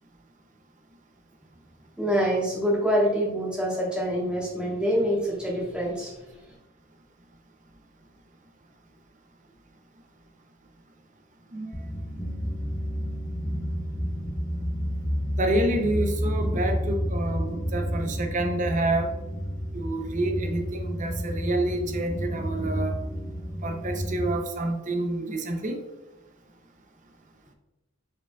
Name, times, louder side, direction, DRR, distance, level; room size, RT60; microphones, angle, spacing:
voice 1, 2.0-6.5, equal, 5° right, -5 dB, 1.3 m, -26 dB
sound 1, 11.7-24.4, equal, 15° left, 0.4 m, -30 dB
voice 2, 15.4-19.1 19.7-23.0 23.6-25.8, right 1 dB, 35° right, 5 dB, 0.6 m, -28 dB
4.8 x 4.6 x 2.3 m, 0.98 s
head